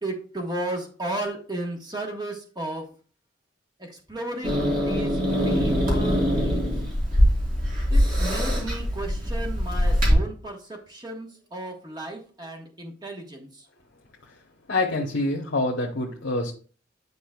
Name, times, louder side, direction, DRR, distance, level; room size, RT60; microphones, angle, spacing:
voice 1, 0.0-2.8 3.8-6.7 7.9-13.6, right 1 dB, 25° right, 2 dB, 1.3 m, -34 dB
Growling / Hiss, 4.4-10.1, equal, 50° right, 3.0 m, -23 dB
voice 2, 14.7-16.5, left 2 dB, 80° left, 0 dB, 1.0 m, -26 dB
9.7 x 5.1 x 2.4 m, 0.39 s
head